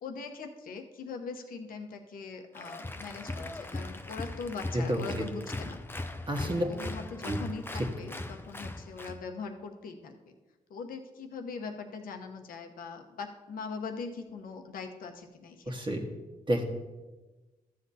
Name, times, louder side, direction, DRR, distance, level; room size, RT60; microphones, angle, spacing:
voice 1, 0.0-5.8 6.4-10.3 10.7-15.7, left 5 dB, 80° left, 4 dB, 1.0 m, -41 dB
Applause, 2.5-9.2, left 2 dB, 15° left, 0.6 m, -39 dB
voice 2, 6.3-6.7 7.3-7.4 15.7-16.0 16.5-16.6, equal, 35° right, 1 dB, 1.5 m, -29 dB
13.5 x 7.7 x 2.8 m, 1.2 s
cardioid pair, 70°, 14 cm